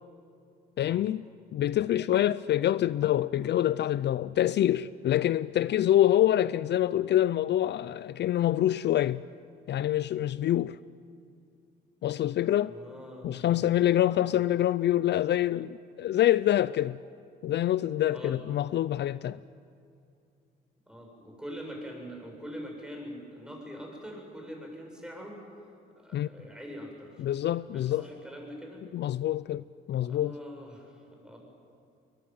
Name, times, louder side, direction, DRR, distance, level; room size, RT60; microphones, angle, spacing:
voice 1, 0.8-1.2 1.5-9.2 9.7-10.8 12.0-12.7 13.2-17.0 17.4-19.4 26.1-26.3 27.2-28.1 28.9-30.4, left 12 dB, 60° left, 0.5 m, -26 dB
voice 2, 12.6-13.7 18.1-18.4 20.9-25.4 26.0-27.2 27.7-28.8 30.0-31.4, equal, 5° right, 7.9 m, -43 dB
22.0 x 20.5 x 9.4 m
cardioid pair, 90°, 20 cm